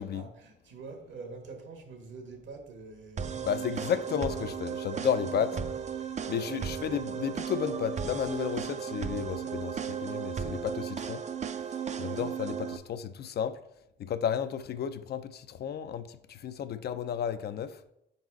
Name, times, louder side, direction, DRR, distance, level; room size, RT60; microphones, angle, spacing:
voice 1, 0.0-3.6 4.1-4.2 4.9-5.1 6.0-6.6 12.0-12.3, right 4 dB, 70° right, 1.5 m, -46 dB
sound 1, 3.2-12.8, right 7 dB, 35° right, 0.4 m, -35 dB
voice 2, 3.4-5.5 6.3-11.2 12.0-13.6 14.0-17.8, left 8 dB, 55° left, 0.4 m, -32 dB
5.2 x 4.0 x 4.7 m
cardioid pair, 90°, 20 cm